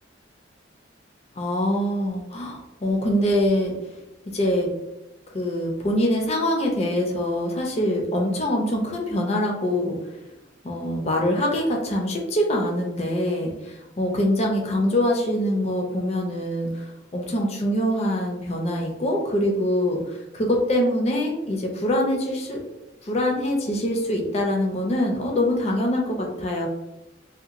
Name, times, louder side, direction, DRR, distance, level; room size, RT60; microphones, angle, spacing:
voice 1, 1.4-3.7 4.3-4.7 5.3-10.0 10.6-16.7 17.1-22.6 23.1-26.7, left 1 dB, 35° left, 0 dB, 0.4 m, -24 dB
2.8 x 2.2 x 2.5 m, 0.96 s
head